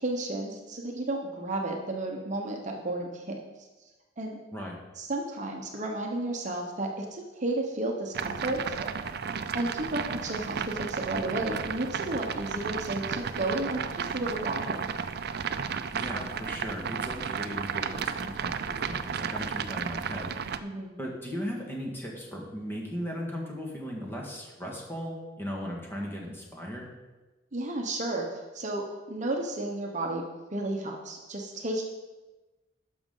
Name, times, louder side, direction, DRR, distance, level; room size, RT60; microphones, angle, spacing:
voice 1, 0.0-3.4 4.2-4.4 5.0-8.9 9.5-14.8 20.6-21.0 27.5-30.2 30.5-31.8, right 2 dB, 40° right, 1 dB, 0.9 m, -32 dB
sound 1, 8.1-20.6, right 6 dB, 55° right, 0.4 m, -33 dB
voice 2, 15.9-20.3 21.0-26.9, equal, 10° left, -2 dB, 1.6 m, -37 dB
12.0 x 6.1 x 3.8 m, 1.2 s
head